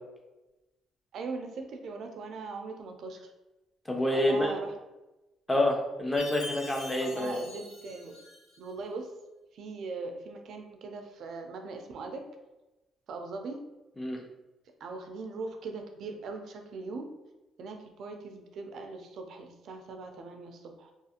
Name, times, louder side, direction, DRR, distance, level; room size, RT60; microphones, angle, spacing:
voice 1, 1.1-3.3 4.1-4.8 7.0-8.2 8.6-9.1 9.5-12.2 13.1-13.6 14.8-17.1 17.6-20.9, right 3 dB, 55° right, 4 dB, 0.3 m, -40 dB
voice 2, 3.9-4.5 5.5-7.4 14.0-14.2, left 1 dB, 10° left, 0 dB, 0.4 m, -27 dB
Chime, 6.2-8.7, left 2 dB, 90° left, 0.9 m, -44 dB
2.4 x 2.4 x 2.8 m, 1.0 s
cardioid pair, 150°, 0 cm